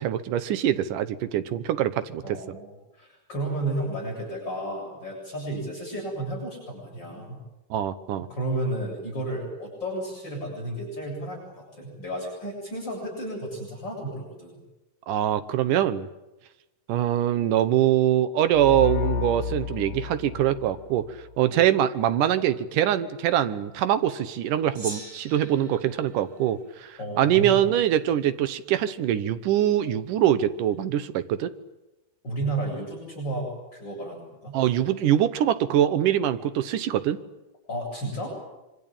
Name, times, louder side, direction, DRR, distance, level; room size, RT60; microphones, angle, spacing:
voice 1, 0.0-2.4 7.7-8.3 15.1-16.1 16.9-21.1 21.4-31.5 34.5-37.2, right 11 dB, 70° right, 13 dB, 2.4 m, -23 dB
voice 2, 2.2-7.4 8.3-14.5 21.5-21.7 27.0-27.7 32.2-34.6 37.7-38.3, right 1 dB, 30° left, -3 dB, 8.2 m, -32 dB
sound 1, 18.5-21.3, left 7 dB, 85° left, 3.0 m, -31 dB
Gong, 24.7-27.4, right 1 dB, 25° right, 2.5 m, -42 dB
25.5 x 24.0 x 8.8 m, 0.99 s
omnidirectional pair, 4.2 m